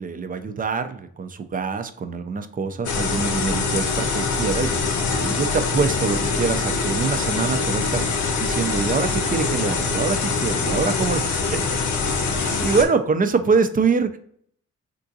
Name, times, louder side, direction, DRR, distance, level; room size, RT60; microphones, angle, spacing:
voice 1, 0.0-8.0 8.4-11.6 12.6-14.2, right 5 dB, 30° right, 9 dB, 0.4 m, -24 dB
sound 1, 2.8-12.8, left 4 dB, 90° left, 0.6 m, -24 dB
3.7 x 2.4 x 2.6 m, 0.64 s
cardioid pair, 90°, 29 cm